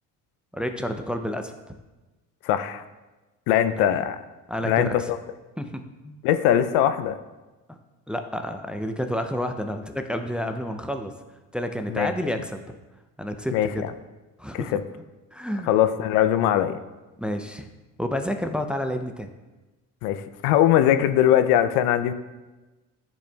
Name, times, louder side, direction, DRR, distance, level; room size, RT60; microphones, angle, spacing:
voice 1, 0.5-1.6 3.7-3.9 4.5-5.1 5.6-6.2 7.7-7.8 8.1-11.1 11.5-12.7 13.2-13.8 14.4-14.8 15.3-15.7 17.2-17.7 18.0-19.3, equal, 5° right, 6 dB, 0.4 m, -30 dB
voice 2, 2.4-2.8 3.5-4.2 4.6-5.2 6.2-7.2 11.9-12.1 13.5-13.9 14.5-14.8 15.7-16.8 20.0-22.1, left 11 dB, 85° left, 11 dB, 0.5 m, -21 dB
10.5 x 4.3 x 2.3 m, 1.1 s
supercardioid pair, 90°, 36 cm